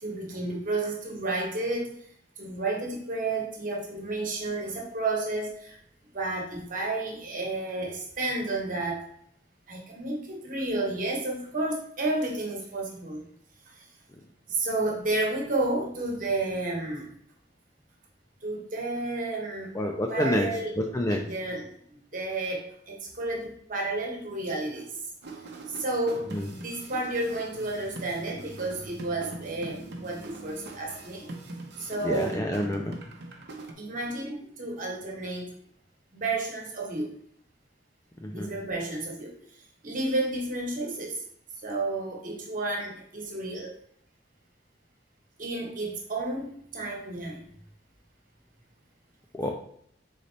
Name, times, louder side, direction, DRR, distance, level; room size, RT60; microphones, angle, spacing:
voice 1, 0.0-1.9 2.4-5.8 6.1-9.0 9.7-13.3 13.7-13.8 14.5-17.1 18.4-19.7 20.1-20.8 21.1-21.7 22.1-25.0 25.7-31.3 31.8-32.4 33.8-35.5 36.1-37.1 38.3-39.3 39.8-41.2 41.6-43.8 45.4-47.4, right 2 dB, 50° right, -1 dB, 1.2 m, -31 dB
voice 2, 19.7-20.5 20.8-21.2 26.3-26.5 32.0-33.0 38.2-38.5 49.3-49.5, left 1 dB, 20° left, 2 dB, 0.4 m, -28 dB
sound 1, 25.2-33.7, right 2 dB, 65° right, 0.8 m, -42 dB
4.0 x 4.0 x 3.3 m, 0.67 s
head